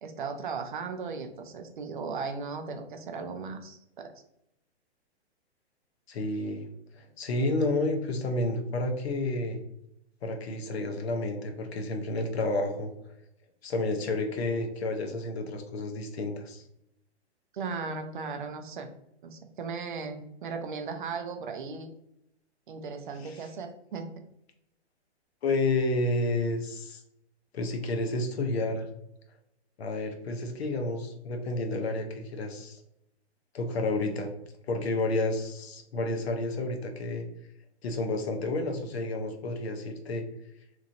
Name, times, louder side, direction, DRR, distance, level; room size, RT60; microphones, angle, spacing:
voice 1, 0.0-4.1 17.5-18.9 19.2-21.9 22.7-24.1, right 5 dB, 50° right, 6 dB, 0.4 m, -37 dB
voice 2, 6.1-6.7 7.0-9.6 10.2-12.9 13.6-16.6 23.2-23.4 25.4-27.0 27.5-28.8 29.8-32.8 33.5-34.3 34.7-37.2 37.8-40.2, left 2 dB, 65° left, 4 dB, 0.7 m, -30 dB
3.0 x 2.6 x 2.5 m, 0.80 s
hypercardioid pair, 160°, 34 cm